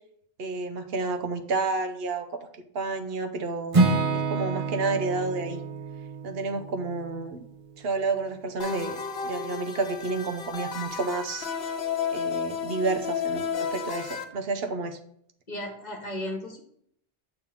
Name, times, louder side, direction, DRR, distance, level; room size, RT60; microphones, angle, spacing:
voice 1, 0.4-2.4 2.7-3.8 4.1-5.6 6.2-7.5 7.8-11.5 12.1-15.0, right 3 dB, 70° right, 6 dB, 0.9 m, -30 dB
Acoustic guitar / Strum, 3.7-7.8, right 3 dB, 35° right, 0.8 m, -28 dB
sound 1, 8.6-14.2, left 6 dB, 65° left, 0.9 m, -32 dB
voice 2, 15.5-16.6, left 1 dB, 45° left, 2 dB, 1.3 m, -35 dB
6.7 x 3.6 x 5.8 m, 0.69 s
omnidirectional pair, 1.1 m